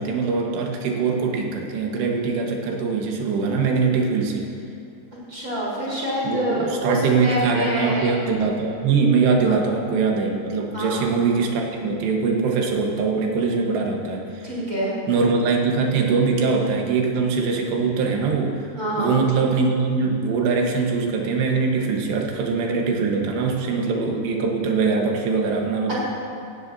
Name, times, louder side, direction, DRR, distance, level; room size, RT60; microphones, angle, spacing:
voice 1, 0.0-4.5 6.2-14.5 15.1-18.7 19.0-26.0, right 4 dB, 80° right, 0 dB, 3.5 m, -22 dB
voice 2, 5.3-8.1 9.4-9.5 10.7-11.0 14.4-14.9 18.8-19.2, equal, 20° right, -7 dB, 4.0 m, -26 dB
17.0 x 16.5 x 2.8 m, 2.5 s
omnidirectional pair, 4.9 m